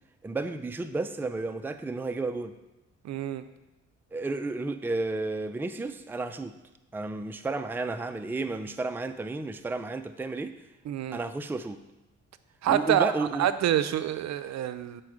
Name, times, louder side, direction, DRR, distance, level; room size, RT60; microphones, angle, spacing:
voice 1, 0.2-2.5 4.1-6.5 6.9-10.6 11.1-11.8 12.7-13.5, right 3 dB, 5° right, 8 dB, 0.4 m, -32 dB
voice 2, 3.0-3.4 10.9-11.2 12.6-13.1 13.4-15.0, right 11 dB, 65° right, 12 dB, 0.5 m, -26 dB
9.2 x 4.5 x 4.9 m, 0.98 s
cardioid pair, 90°, 30 cm